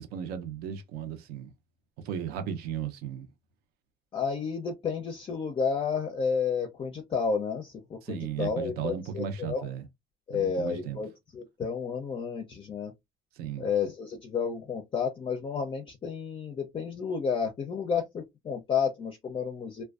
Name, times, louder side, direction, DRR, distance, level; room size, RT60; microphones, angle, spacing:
voice 1, 0.0-1.5 2.0-3.3 8.0-9.9 10.3-11.0 13.4-13.7, right 8 dB, 75° right, 0.6 m, -35 dB
voice 2, 4.1-9.7 10.3-12.9 13.6-19.8, left 6 dB, 30° left, 0.5 m, -31 dB
2.4 x 2.2 x 2.3 m
cardioid pair, 110°, 16 cm